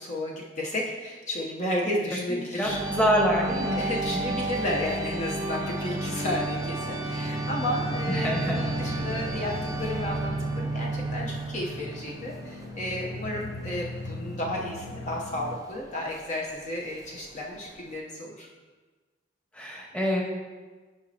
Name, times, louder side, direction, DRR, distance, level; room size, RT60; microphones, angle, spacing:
voice 1, 0.0-2.8 3.7-18.5, left 1 dB, 40° left, -2 dB, 0.7 m, -32 dB
voice 2, 2.6-3.8 4.1-4.2 8.1-8.6 8.9-9.0 19.5-20.2, equal, 5° left, -2 dB, 1.1 m, -26 dB
sound 1, 2.6-18.0, right 2 dB, 20° right, 0.5 m, -32 dB
sound 2, 7.0-15.6, left 2 dB, 60° left, 0.4 m, -39 dB
10.0 x 5.1 x 2.7 m, 1.4 s
head